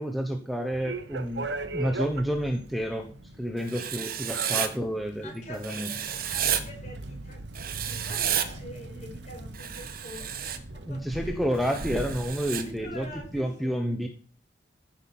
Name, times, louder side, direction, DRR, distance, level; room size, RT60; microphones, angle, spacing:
voice 1, 0.0-3.1 3.4-5.9 10.9-13.1 13.3-14.1, equal, ahead, 3 dB, 1.1 m, -30 dB
sound 1, 0.7-13.4, right 2 dB, 85° right, 1.2 m, -40 dB
Writing, 3.7-4.7 5.6-6.6 7.5-8.5 9.5-10.6 11.6-12.6, right 9 dB, 55° right, 1.3 m, -31 dB
voice 2, 5.2-12.0 12.6-13.8, left 1 dB, 45° left, 1 dB, 5.1 m, -46 dB
15.5 x 5.9 x 6.1 m, 0.42 s
head